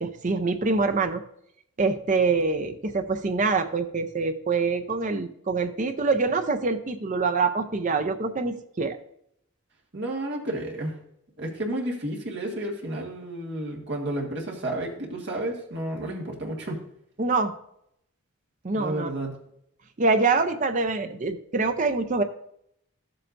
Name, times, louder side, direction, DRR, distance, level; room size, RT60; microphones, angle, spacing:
voice 1, 0.0-1.2 1.8-9.0 17.2-17.6 18.6-19.1 20.0-22.2, right 4 dB, 35° right, 9 dB, 0.5 m, -25 dB
voice 2, 9.9-11.0 11.4-16.8 18.7-19.3, right 1 dB, 50° right, -1 dB, 1.7 m, -31 dB
13.5 x 7.7 x 2.6 m, 0.75 s
head